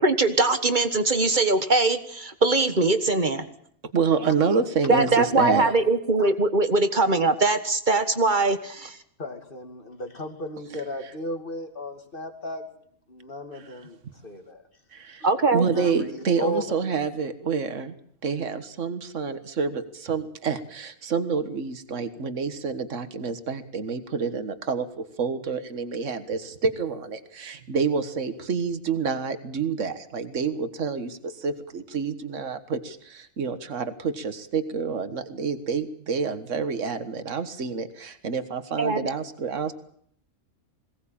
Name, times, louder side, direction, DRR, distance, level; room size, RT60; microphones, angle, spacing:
voice 1, 0.0-3.5 4.9-9.0 15.2-15.6 38.8-39.1, right 3 dB, 35° right, 9 dB, 1.5 m, -22 dB
voice 2, 3.9-5.7 13.5-13.8 14.9-15.2 15.5-18.0 18.2-39.7, right 5 dB, 60° right, 10 dB, 1.8 m, -28 dB
voice 3, 9.2-12.6 13.1-14.0 14.2-14.6 15.7-16.6, equal, 40° left, 5 dB, 2.8 m, -35 dB
22.0 x 18.0 x 8.7 m, 0.67 s
omnidirectional pair, 1.4 m